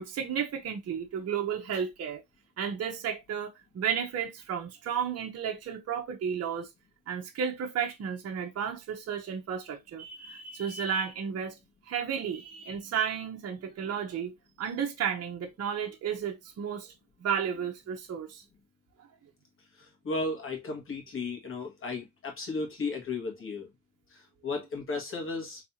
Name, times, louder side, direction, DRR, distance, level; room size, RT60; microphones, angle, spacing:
voice 1, 0.0-2.2 2.6-6.7 7.1-11.6 11.9-14.3 14.6-16.9 17.2-18.4, right 7 dB, 55° right, 1.1 m, -33 dB
voice 2, 19.7-23.7 24.1-25.6, left 3 dB, 45° left, 2.1 m, -35 dB
4.0 x 3.5 x 2.9 m
cardioid pair, 90°, 30 cm